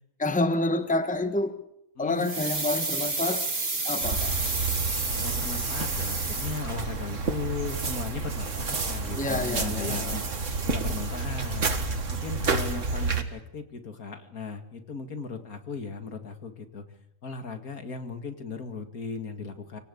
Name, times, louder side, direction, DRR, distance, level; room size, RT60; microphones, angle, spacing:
voice 1, 0.2-1.6 2.0-3.4 3.8-4.3 9.1-10.2, left 2 dB, 5° left, 9 dB, 1.3 m, -28 dB
voice 2, 2.0-2.3 5.1-10.3 10.6-11.7 12.1-16.8 17.2-19.8, left 5 dB, 75° left, 7 dB, 2.6 m, -37 dB
sound 1, 2.2-7.0 7.3-7.4, right 3 dB, 45° right, 2.6 m, -30 dB
sound 2, 4.0-13.2, right 4 dB, 60° right, 2.1 m, -30 dB
27.5 x 18.0 x 8.5 m, 0.81 s
omnidirectional pair, 1.5 m